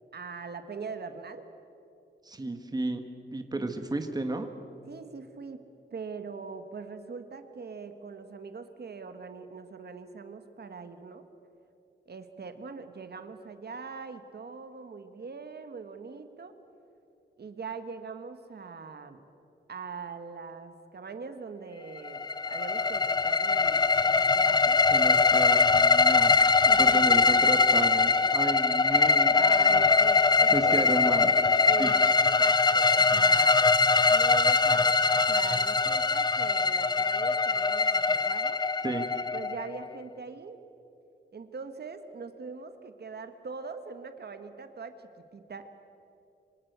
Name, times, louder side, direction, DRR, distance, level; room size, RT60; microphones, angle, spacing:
voice 1, 0.1-1.5 3.5-3.8 4.9-5.6 5.9-11.3 12.1-16.5 17.4-19.2 19.7-22.2 22.5-24.9 26.7-27.4 29.3-30.9 31.6-32.0 32.4-33.6 34.1-38.6 39.3-40.6 41.3-45.7, right 4 dB, 55° right, 8 dB, 1.5 m, -42 dB
voice 2, 2.2-3.0 3.3-4.5 24.9-26.4 26.6-29.3 29.7-29.9 30.5-31.3 31.8-32.0 38.8-39.1, right 2 dB, 20° right, 6 dB, 1.5 m, -32 dB
sound 1, 22.0-39.9, left 4 dB, 20° left, 0.6 m, -22 dB
26.0 x 25.0 x 8.1 m, 2.7 s
wide cardioid pair, 170°, 20 cm